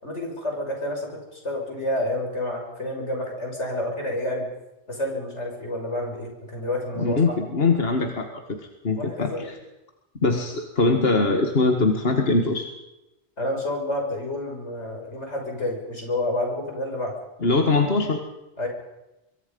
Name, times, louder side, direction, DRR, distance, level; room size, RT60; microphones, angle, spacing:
voice 1, 0.0-4.5 4.9-7.2 9.0-9.5 13.4-17.1 18.6-18.7, left 1 dB, 85° left, 1 dB, 6.4 m, -29 dB
voice 2, 7.0-9.6 10.2-12.7 17.4-18.2, left 3 dB, 60° left, 4 dB, 2.0 m, -22 dB
24.5 x 23.5 x 5.5 m, 0.96 s
omnidirectional pair, 1.2 m